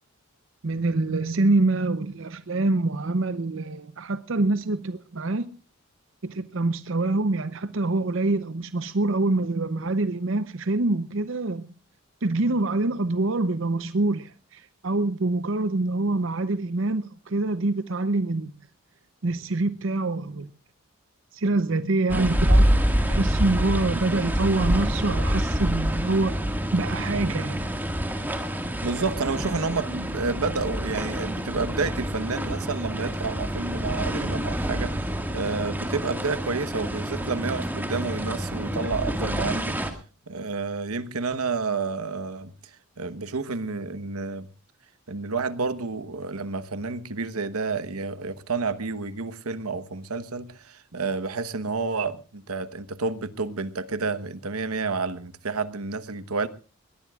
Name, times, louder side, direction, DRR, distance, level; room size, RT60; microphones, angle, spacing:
voice 1, 0.6-5.5 6.2-11.7 12.2-18.5 19.2-20.5 21.3-26.3 26.7-27.6, right 2 dB, 60° right, 0.7 m, -25 dB
sound 1, 22.1-39.9, equal, 10° right, 1.8 m, -27 dB
voice 2, 28.8-39.8 40.3-42.5 43.0-44.5 45.1-56.5, right 4 dB, 90° right, 1.1 m, -30 dB
21.5 x 19.0 x 2.4 m
head